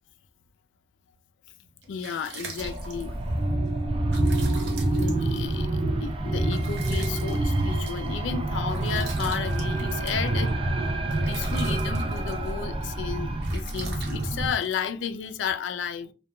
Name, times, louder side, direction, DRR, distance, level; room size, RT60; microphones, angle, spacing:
sound 1, 1.6-15.5, right 4 dB, 70° right, 0.7 m, -45 dB
voice 1, 1.9-3.2 4.9-10.6 11.3-16.1, left 7 dB, 85° left, 0.3 m, -33 dB
sound 2, 2.6-14.5, right 1 dB, 30° right, 0.3 m, -27 dB
2.2 x 2.1 x 2.9 m
head